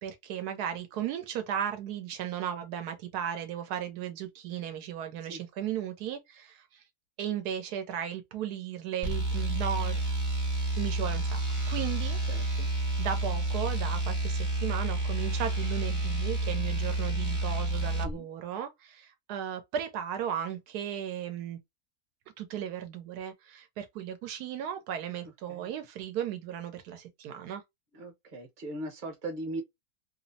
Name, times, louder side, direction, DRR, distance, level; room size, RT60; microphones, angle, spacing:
voice 1, 0.0-6.8 7.2-10.0 10.8-11.4 11.7-12.2 13.0-21.6 22.4-27.6, right 9 dB, 85° right, 1.1 m, -35 dB
sound 1, 9.0-18.1, right 2 dB, 20° right, 0.6 m, -30 dB
voice 2, 12.3-12.7 18.0-18.2 25.5-25.7 27.9-29.6, right 1 dB, 35° right, 0.9 m, -39 dB
3.0 x 2.0 x 2.5 m
omnidirectional pair, 1.6 m